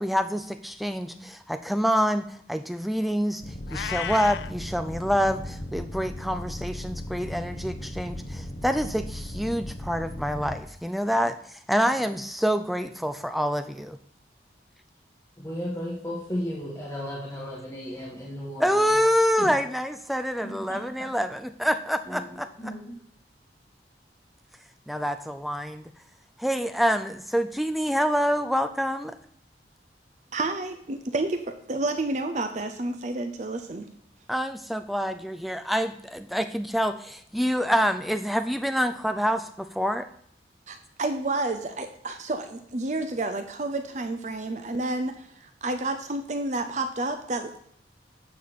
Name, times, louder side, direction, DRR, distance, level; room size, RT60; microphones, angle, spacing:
voice 1, 0.0-3.4 3.7-14.0 18.6-22.5 24.9-25.9 26.4-29.1 34.3-40.1, equal, ahead, 9 dB, 0.4 m, -26 dB
sound 1, 3.4-10.6, left 1 dB, 50° left, 1.3 m, -37 dB
Meow, 3.7-4.5, left 9 dB, 75° left, 0.3 m, -33 dB
voice 2, 15.4-18.7 19.4-19.5 20.4-20.8 22.1-22.9, equal, 20° left, -6 dB, 1.4 m, -35 dB
voice 3, 30.3-33.9 40.7-47.6, right 2 dB, 40° right, 7 dB, 0.6 m, -30 dB
9.5 x 4.1 x 6.9 m, 0.66 s
head